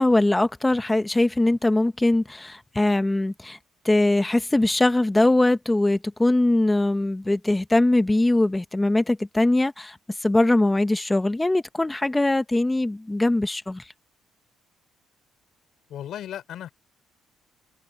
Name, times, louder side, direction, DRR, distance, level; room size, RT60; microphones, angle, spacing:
voice 1, 0.0-3.6 3.8-9.9 10.2-13.8, left 2 dB, 10° left, 1.3 m, -21 dB
voice 2, 15.9-16.7, left 11 dB, 65° left, 4.9 m, -35 dB
cardioid pair, 110°, 0 cm